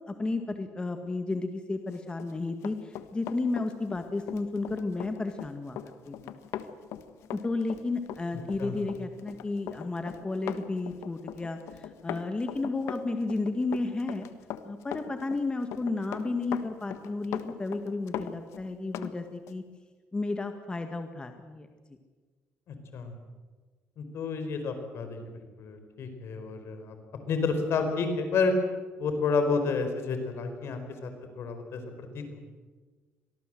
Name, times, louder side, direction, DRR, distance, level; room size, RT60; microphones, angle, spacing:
voice 1, 0.1-5.8 6.1-6.2 7.3-14.3 14.6-19.6 20.1-21.7, left 3 dB, 20° left, 6 dB, 1.8 m, -32 dB
Run, 2.1-19.1 19.5-19.6, left 11 dB, 80° left, 1.4 m, -40 dB
voice 2, 22.7-23.1 24.0-26.9 27.3-28.5 29.0-31.1 31.4-31.8 32.1-32.4, left 4 dB, 65° left, 7 dB, 4.8 m, -30 dB
25.0 x 18.5 x 7.8 m, 1.4 s
cardioid pair, 100°, 5 cm